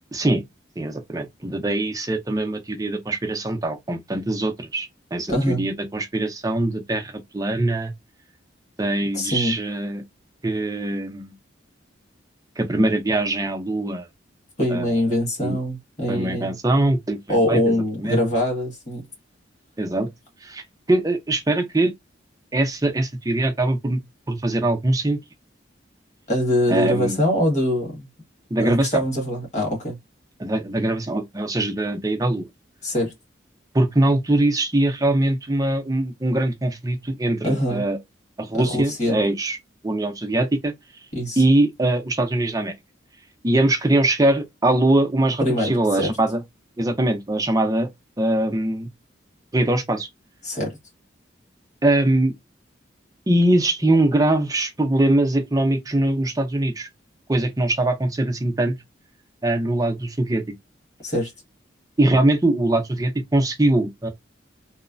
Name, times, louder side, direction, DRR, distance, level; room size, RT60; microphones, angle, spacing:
voice 1, 0.8-7.9 8.8-10.0 10.4-11.3 12.6-14.1 14.7-15.0 15.4-15.6 16.1-17.7 18.0-18.3 19.8-20.1 20.4-21.9 22.5-24.0 24.3-25.2 26.7-27.2 28.5-29.0 30.4-32.5 33.7-38.0 38.4-39.6 39.8-40.7 41.4-42.7 43.4-46.4 46.8-47.9 48.2-48.9 49.5-50.1 51.8-52.3 53.3-56.9 57.3-58.7 59.4-60.4 62.0-64.1, right 1 dB, 20° right, 0.5 m, -22 dB
voice 2, 5.3-5.7 9.1-9.6 14.6-16.6 17.3-19.0 26.3-28.1 28.6-30.0 32.8-33.1 37.4-37.8 38.5-39.2 41.1-41.4 45.4-46.1 50.4-50.8 61.0-61.3, left 1 dB, 35° left, 1.4 m, -23 dB
3.1 x 2.1 x 2.4 m
head